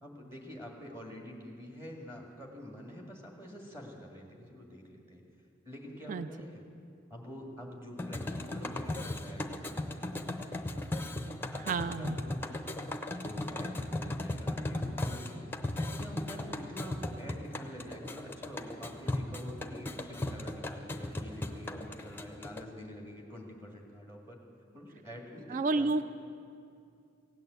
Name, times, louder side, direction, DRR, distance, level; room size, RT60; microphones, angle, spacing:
voice 1, 0.0-5.2 5.6-6.6 7.1-10.2 11.5-12.6 13.2-15.4 16.0-24.4 24.7-26.0, equal, 15° right, -1 dB, 1.9 m, -47 dB
sound 1, 8.0-22.6, left 1 dB, 10° left, 0.6 m, -37 dB
voice 2, 11.6-12.2 25.5-26.0, right 3 dB, 40° right, 13 dB, 0.3 m, -30 dB
16.5 x 9.0 x 8.1 m, 2.4 s
head